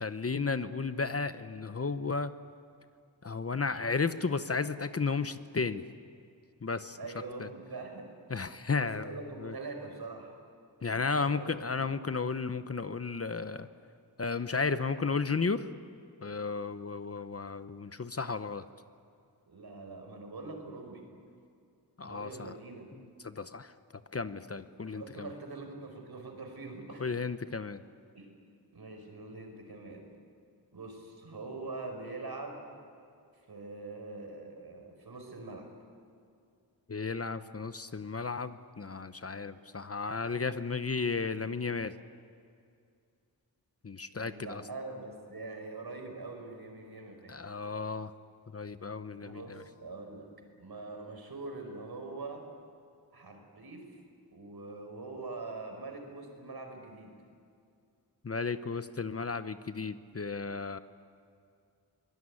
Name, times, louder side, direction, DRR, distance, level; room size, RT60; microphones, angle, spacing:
voice 1, 0.0-2.3 3.2-5.8 6.6-7.0 7.4-7.5 8.3-9.1 9.4-9.5 10.8-13.7 14.2-15.7 16.2-18.7 22.0-22.5 23.2-23.7 24.1-25.3 27.0-27.8 36.9-41.9 43.8-44.6 47.3-48.1 48.5-49.6 58.2-60.8, left 4 dB, 35° left, 12 dB, 0.9 m, -33 dB
voice 2, 7.0-8.1 8.8-10.3 10.9-11.9 19.5-21.1 22.0-22.9 24.7-27.3 28.1-28.3 28.7-30.1 30.7-32.6 33.5-35.7 44.1-47.4 49.2-50.3 50.6-52.4 53.1-53.9 54.3-57.1, right 3 dB, 65° right, 4 dB, 5.0 m, -43 dB
24.0 x 19.5 x 9.8 m, 2.4 s
wide cardioid pair, 95°, 40 cm